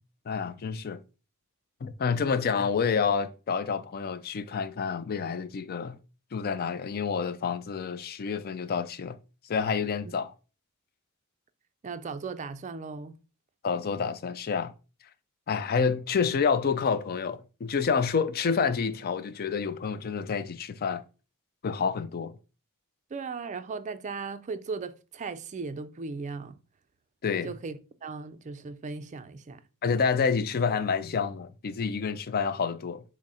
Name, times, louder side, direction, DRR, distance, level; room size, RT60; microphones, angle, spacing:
voice 1, 0.3-1.0 1.8-6.0 6.3-9.2 9.5-10.3 13.6-14.7 15.5-21.0 21.6-22.3 27.2-27.5 29.8-33.0, left 6 dB, 45° left, 0.4 m, -28 dB
voice 2, 11.8-13.2 23.1-26.6 27.4-29.6, right 4 dB, 35° right, 0.3 m, -37 dB
6.1 x 2.1 x 4.1 m
head